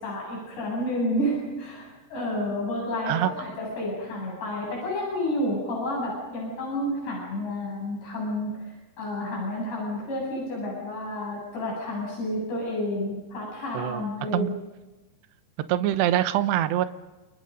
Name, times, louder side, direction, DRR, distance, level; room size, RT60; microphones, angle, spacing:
voice 1, 0.0-14.5, left 1 dB, 60° left, -4 dB, 10.0 m, -30 dB
voice 2, 13.7-14.5 15.7-16.9, right 12 dB, 75° right, 12 dB, 2.7 m, -24 dB
29.0 x 28.5 x 5.3 m, 1.2 s
omnidirectional pair, 5.6 m